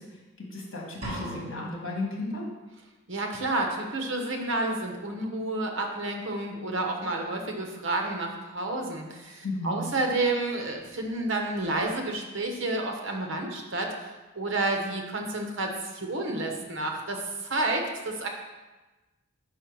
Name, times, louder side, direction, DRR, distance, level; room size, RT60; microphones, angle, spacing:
voice 1, 0.0-2.5 9.4-9.8, left 2 dB, 60° left, -2 dB, 1.5 m, -34 dB
sound 1, 1.0-2.0, right 1 dB, 30° right, 1.4 m, -37 dB
voice 2, 3.1-14.1 14.3-18.3, right 2 dB, 60° right, 3 dB, 0.9 m, -30 dB
5.5 x 5.4 x 4.5 m, 1.2 s
head